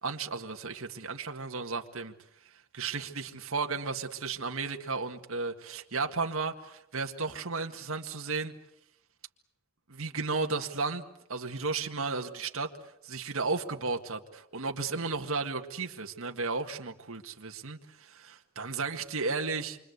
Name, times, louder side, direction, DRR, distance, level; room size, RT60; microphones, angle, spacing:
voice 1, 0.0-2.1 2.7-8.5 9.9-11.0 11.3-12.7 13.0-19.8, right 4 dB, 75° right, 4 dB, 1.8 m, -34 dB
28.0 x 24.5 x 8.1 m, 0.79 s
head